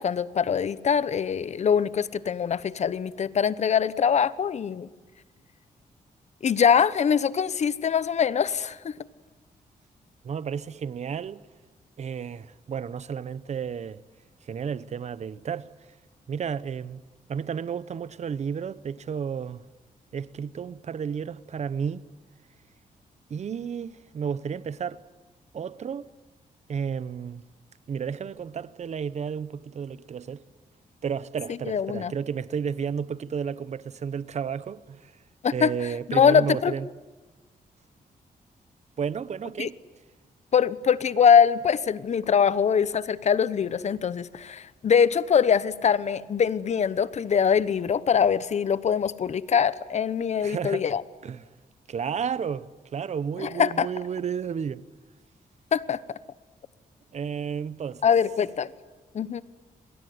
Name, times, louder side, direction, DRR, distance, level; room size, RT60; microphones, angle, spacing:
voice 1, 0.0-4.9 6.4-9.0 31.7-32.1 35.4-35.7 36.1-36.7 39.6-39.7 40.5-51.0 53.4-53.9 55.7-56.0 58.0-58.7 59.1-59.4, left 7 dB, 50° left, 1.0 m, -23 dB
voice 2, 10.2-11.4 12.0-14.0 14.4-15.7 16.3-17.0 17.3-19.6 20.1-22.1 23.3-25.0 25.5-26.1 26.7-27.4 27.9-30.4 31.0-35.2 35.5-36.9 39.0-39.8 50.4-50.8 51.2-51.5 51.9-54.8 57.1-58.1, right 7 dB, 50° right, 0.9 m, -32 dB
27.5 x 22.0 x 9.6 m
wide cardioid pair, 140°, 15 cm